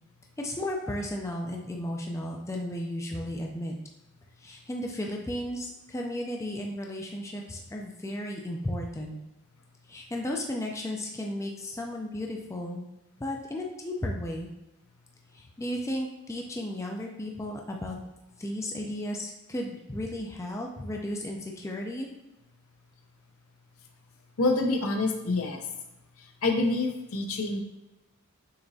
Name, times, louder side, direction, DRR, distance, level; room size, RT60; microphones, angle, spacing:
voice 1, 0.4-3.7 4.4-9.2 9.9-12.9 13.2-14.5 15.3-18.0 18.4-22.1, left 1 dB, 15° left, 0 dB, 0.4 m, -34 dB
voice 2, 24.4-25.6 26.4-27.6, left 2 dB, 70° left, 3 dB, 0.7 m, -26 dB
6.7 x 2.9 x 2.7 m, 0.97 s
head